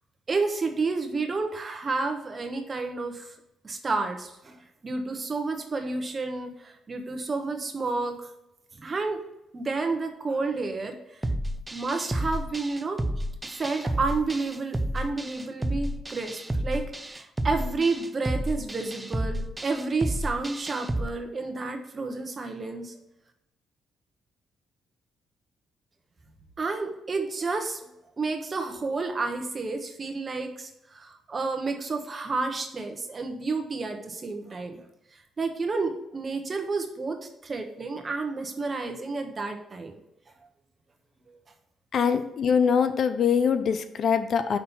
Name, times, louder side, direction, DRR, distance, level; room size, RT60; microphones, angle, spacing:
voice 1, 0.3-3.3 3.6-4.5 4.8-8.2 8.7-9.2 9.5-11.0 11.7-13.0 13.5-22.9 26.6-27.8 28.2-34.8 35.1-39.9, right 3 dB, 35° right, 5 dB, 1.2 m, -30 dB
sound 1, 11.2-21.1, right 1 dB, 10° right, 0.5 m, -31 dB
voice 2, 41.9-44.6, left 7 dB, 60° left, 10 dB, 0.5 m, -23 dB
5.6 x 4.0 x 5.6 m, 0.85 s
cardioid pair, 90°, 0 cm